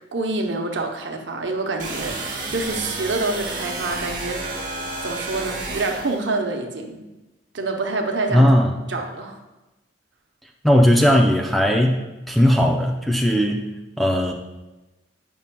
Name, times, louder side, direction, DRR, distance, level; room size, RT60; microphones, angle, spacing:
voice 1, 0.0-7.0 7.5-8.5 8.9-9.4, right 3 dB, 70° right, 3 dB, 0.7 m, -27 dB
sound 1, 1.8-6.2, right 2 dB, 45° right, 1.0 m, -31 dB
voice 2, 8.3-8.7 10.6-13.7 14.0-14.3, equal, ahead, 2 dB, 0.3 m, -17 dB
8.7 x 5.4 x 2.2 m, 1.1 s
head